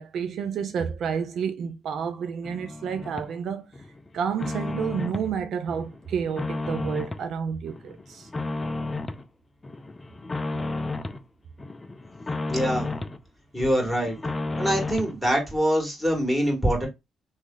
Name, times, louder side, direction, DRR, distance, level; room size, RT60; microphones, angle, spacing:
voice 1, 0.0-3.7 4.1-8.3, right 7 dB, 70° right, 0.4 m, -30 dB
sound 1, 2.5-3.3 3.7-5.3 5.7-7.3 7.7-9.2 9.6-11.2 11.6-13.2 13.6-15.2, left 2 dB, 20° left, 0.4 m, -32 dB
voice 2, 12.5-12.9 13.5-14.1 14.6-16.9, equal, 5° right, 1.9 m, -24 dB
3.1 x 2.4 x 3.8 m
cardioid pair, 90°, 0 cm